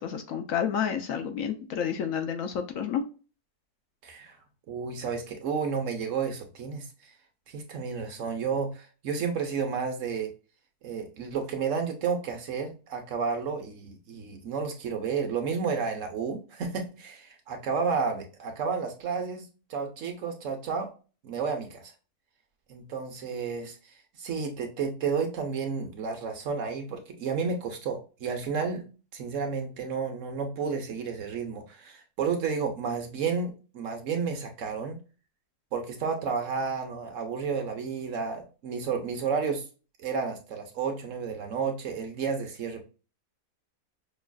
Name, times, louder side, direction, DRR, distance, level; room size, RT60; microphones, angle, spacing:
voice 1, 0.0-3.0, left 8 dB, 70° left, 7 dB, 0.9 m, -30 dB
voice 2, 4.0-4.4 4.7-6.9 7.5-10.3 10.8-20.9 21.2-21.9 22.7-23.8 24.2-28.9 29.1-35.0 35.7-39.6 40.0-42.9, right 5 dB, 60° right, 4 dB, 1.0 m, -31 dB
5.3 x 2.4 x 2.2 m, 0.34 s
omnidirectional pair, 1.6 m